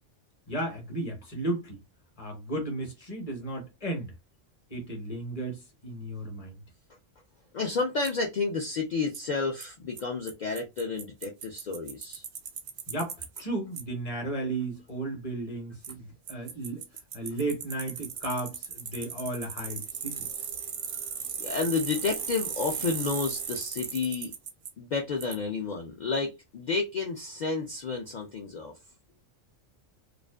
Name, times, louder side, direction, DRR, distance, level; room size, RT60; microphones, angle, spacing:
voice 1, 0.5-1.8 2.2-4.1 4.7-6.6 12.9-16.9 17.1-20.3, right 2 dB, 35° left, 0.8 m, -34 dB
voice 2, 7.5-12.2 21.4-24.3 24.8-28.7, left 4 dB, 65° left, 0.4 m, -31 dB
Bicycle, 8.0-8.1 9.1-9.2 9.6-9.7 10.0-10.1 10.3-10.4 10.6-13.4 13.8-13.9 15.8-15.9 16.3-24.7 25.2-25.3, right 7 dB, 60° right, 0.6 m, -37 dB
2.4 x 2.4 x 2.2 m
omnidirectional pair, 1.3 m